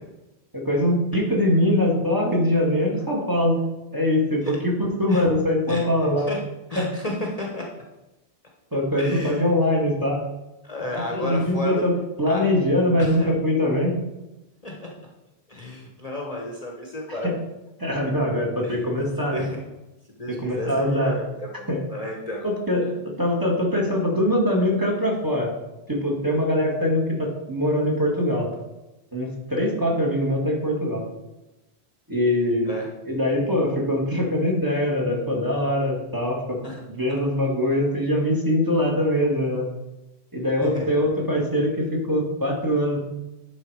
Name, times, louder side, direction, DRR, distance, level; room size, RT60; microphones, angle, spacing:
voice 1, 0.5-3.6 3.9-6.3 6.7-6.9 8.7-10.2 11.1-14.0 17.2-17.3 17.8-19.4 20.3-21.2 21.7-21.8 22.4-25.5 25.9-28.5 29.1-31.0 32.1-32.7 33.0-36.6 36.9-39.7 40.3-43.0, left 1 dB, 20° right, -2 dB, 1.7 m, -23 dB
voice 2, 6.7-7.7 9.0-9.5 10.6-11.8 12.3-12.5 13.0-13.3 14.6-14.9 15.5-17.3 18.6-18.9 19.2-19.6 20.2-22.4 32.7-32.9 36.6-36.8 40.6-41.0, left 1 dB, 35° left, -1 dB, 1.2 m, -32 dB
10.5 x 4.1 x 4.7 m, 0.98 s
omnidirectional pair, 1.1 m